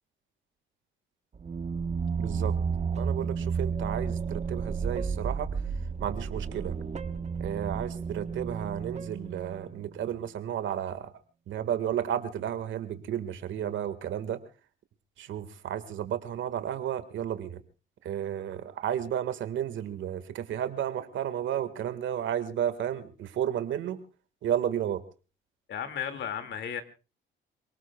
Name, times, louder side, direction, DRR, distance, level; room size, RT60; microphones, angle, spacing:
sound 1, 1.3-9.9, right 5 dB, 35° right, 1.2 m, -32 dB
voice 1, 2.2-2.6 2.9-5.6 6.0-6.8 7.4-11.1 11.5-14.4 15.2-17.6 18.0-24.0 24.4-25.0, right 10 dB, 75° right, 11 dB, 1.8 m, -32 dB
voice 2, 25.7-26.8, left 8 dB, 65° left, 8 dB, 2.3 m, -34 dB
27.5 x 19.0 x 2.3 m, 0.35 s
cardioid pair, 90°, 20 cm